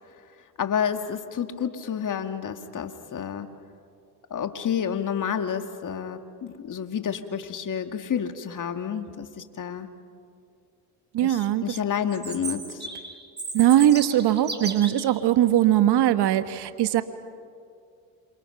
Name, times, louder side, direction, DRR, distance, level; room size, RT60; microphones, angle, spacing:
voice 1, 0.6-3.5 4.3-9.9 11.2-12.9, left 8 dB, 45° left, 8 dB, 2.0 m, -30 dB
voice 2, 11.1-11.7 13.5-17.0, right 12 dB, 60° right, 11 dB, 1.4 m, -20 dB
Chirp tweet, 12.1-15.1, right 3 dB, 25° right, 4.7 m, -35 dB
28.5 x 27.5 x 5.9 m, 2.3 s
supercardioid pair, 70°, 45 cm